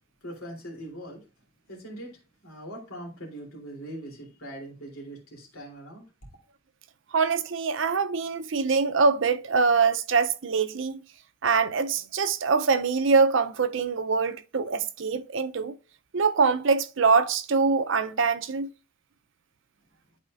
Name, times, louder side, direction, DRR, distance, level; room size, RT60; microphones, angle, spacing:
voice 1, 0.2-1.2 1.7-6.0, right 1 dB, 90° left, 3.1 m, -41 dB
voice 2, 7.1-11.0 11.4-15.7 16.1-18.7, right 5 dB, 65° right, 0.6 m, -24 dB
11.5 x 4.3 x 2.5 m
head